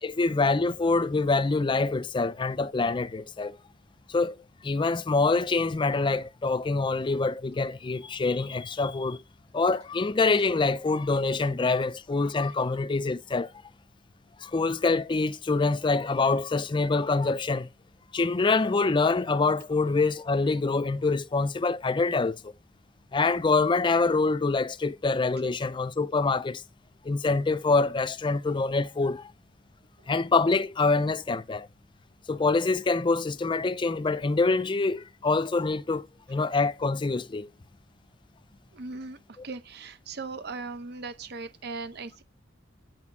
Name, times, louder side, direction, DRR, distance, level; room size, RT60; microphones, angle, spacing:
voice 1, 0.0-3.6 4.1-4.4 4.6-9.2 9.5-13.5 14.4-17.7 18.1-22.5 23.1-26.6 27.0-29.3 30.1-31.7 32.3-37.5 39.4-39.5, left 3 dB, 25° left, 0.4 m, -25 dB
voice 2, 38.7-39.2 39.4-42.2, right 3 dB, 60° right, 0.7 m, -38 dB
9.2 x 4.2 x 5.9 m
head